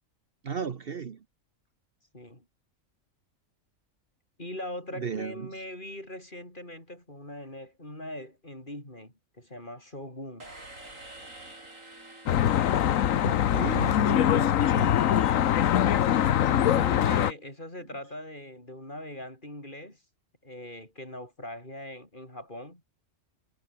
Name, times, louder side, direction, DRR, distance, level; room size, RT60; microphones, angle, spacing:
voice 1, 0.4-1.2 4.9-5.5 13.2-15.0, right 6 dB, 50° right, 1.1 m, -35 dB
voice 2, 2.1-2.4 4.4-10.5 16.6-20.0 20.4-22.8, left 1 dB, 40° left, 7.7 m, -41 dB
sound 1, 10.4-14.2, right 2 dB, 85° right, 7.6 m, -48 dB
Traffic noise roadway noise, 12.3-17.3, left 10 dB, 85° left, 1.2 m, -23 dB
omnidirectional pair, 1.3 m